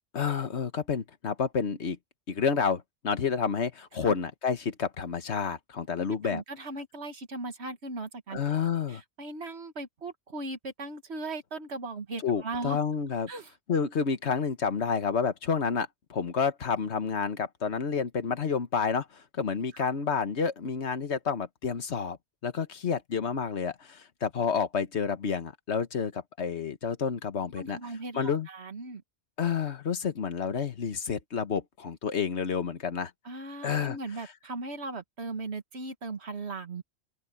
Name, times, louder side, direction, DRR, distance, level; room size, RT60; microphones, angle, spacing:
voice 1, 0.1-2.0 2.3-6.4 8.3-9.0 12.2-13.3 13.7-22.2 22.4-28.5 29.4-33.1 33.6-34.0, left 6 dB, 80° left, 1.5 m, -29 dB
voice 2, 5.9-8.4 8.9-12.8 13.3-13.5 19.7-19.9 27.6-29.0 33.2-36.8, right 2 dB, 75° right, 1.9 m, -38 dB
open air
omnidirectional pair, 1.1 m